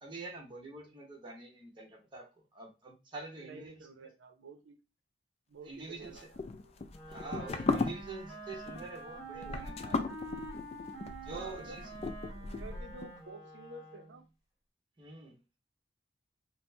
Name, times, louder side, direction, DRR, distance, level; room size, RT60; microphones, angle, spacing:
voice 1, 0.0-3.8 5.7-6.2 7.1-10.1 11.2-11.8 15.0-15.4, right 3 dB, 25° right, 0.9 m, -46 dB
voice 2, 3.4-4.8 5.5-6.8 11.2-11.9 12.3-14.3, right 3 dB, 80° right, 0.5 m, -50 dB
sound 1, 6.0-13.1, left 3 dB, 35° left, 0.3 m, -37 dB
Wind instrument woodwind instrument, 6.9-14.2, right 2 dB, ahead, 1.5 m, -47 dB
4.3 x 2.1 x 2.6 m
head